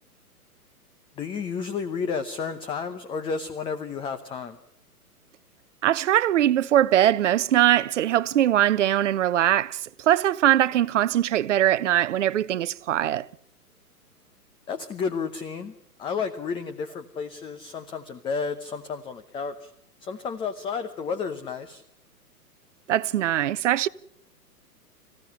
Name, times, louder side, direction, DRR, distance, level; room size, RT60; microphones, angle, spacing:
voice 1, 1.2-4.6 14.7-15.7 16.0-19.7 20.0-21.8, left 5 dB, 10° left, 0.8 m, -31 dB
voice 2, 5.8-13.3 22.9-23.9, right 12 dB, 50° right, 0.8 m, -21 dB
26.0 x 15.5 x 9.8 m
figure-of-eight pair, 120°, 46 cm